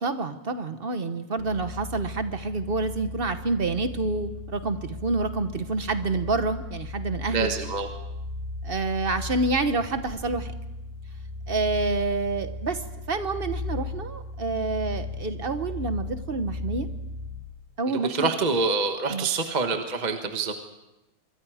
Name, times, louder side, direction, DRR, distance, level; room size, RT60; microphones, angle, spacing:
voice 1, 0.0-7.5 8.6-10.5 11.5-12.8 13.1-16.9 17.8-18.3 19.1-19.3, right 3 dB, 40° right, 9 dB, 0.8 m, -28 dB
sound 1, 1.4-17.5, left 2 dB, 5° right, 3.6 m, -36 dB
voice 2, 7.3-7.9 17.9-20.5, right 4 dB, 25° right, 5 dB, 1.1 m, -26 dB
26.0 x 23.5 x 4.9 m, 0.97 s
omnidirectional pair, 2.4 m